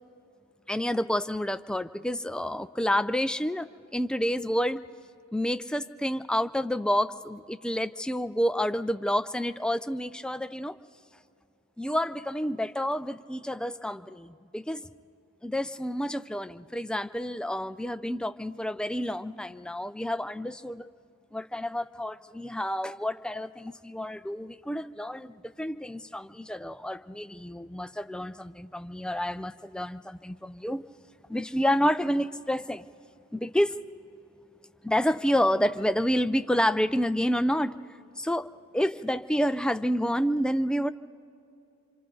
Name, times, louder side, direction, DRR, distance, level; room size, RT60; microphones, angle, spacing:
voice 1, 0.7-4.8 5.3-10.8 11.8-14.9 15.4-20.9 21.3-30.8 31.3-32.9 33.3-33.8 34.8-37.8 38.2-40.9, equal, 5° left, 11 dB, 0.4 m, -29 dB
27.5 x 25.0 x 3.9 m, 2.6 s
head